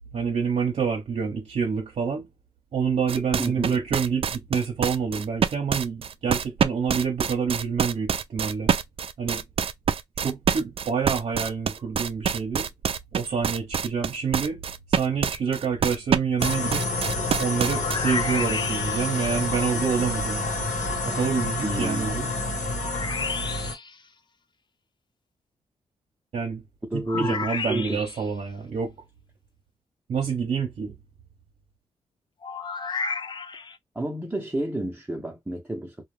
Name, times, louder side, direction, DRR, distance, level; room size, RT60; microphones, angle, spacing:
voice 1, 0.1-2.3 2.7-8.7 9.2-9.4 10.2-12.7 13.1-14.6 14.9-16.9 17.4-20.4 21.0-22.3 26.3-26.6 26.9-28.9 30.1-31.0, right 6 dB, 65° right, 0.7 m, -27 dB
sound 1, 3.1-18.0, right 7 dB, 50° right, 0.4 m, -26 dB
voice 2, 3.4-3.8 21.6-22.6 26.9-27.4 27.7-28.0 34.0-36.0, right 1 dB, 10° right, 0.7 m, -30 dB
sound 2, 16.4-23.7, left 2 dB, 75° left, 1.1 m, -28 dB
sound 3, 17.6-19.3 22.8-24.0 27.1-28.3 32.4-33.8, left 5 dB, 40° left, 0.4 m, -32 dB
2.4 x 2.2 x 3.1 m
cardioid pair, 60°, 12 cm